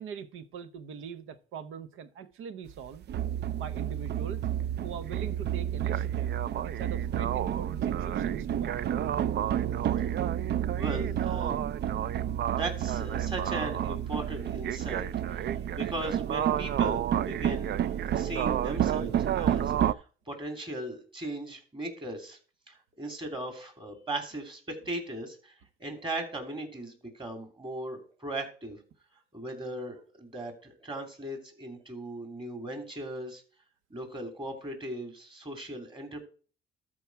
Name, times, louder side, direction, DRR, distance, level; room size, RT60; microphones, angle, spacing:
voice 1, 0.0-3.1 3.6-4.4 4.8-6.4 6.6-8.8, right 7 dB, 85° right, 0.9 m, -42 dB
sound 1, 2.7-19.9, right 10 dB, 60° right, 0.4 m, -30 dB
voice 2, 10.8-11.7 12.0-15.1 15.3-19.9 20.3-22.4 22.7-25.5 25.8-28.8 29.3-33.4 33.9-36.3, right 1 dB, 25° right, 3.1 m, -38 dB
13.0 x 4.9 x 4.7 m
cardioid pair, 90°, 20 cm